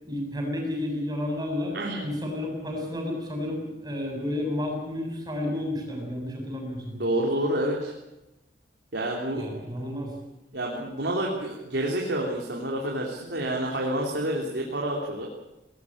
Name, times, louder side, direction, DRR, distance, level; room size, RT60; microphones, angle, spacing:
voice 1, 0.0-7.0 9.3-10.2, left 1 dB, 25° right, 1 dB, 7.4 m, -31 dB
voice 2, 1.7-2.1 6.9-7.9 8.9-9.5 10.5-15.3, right 1 dB, 85° right, -1 dB, 3.4 m, -28 dB
21.0 x 19.0 x 8.7 m, 0.96 s
head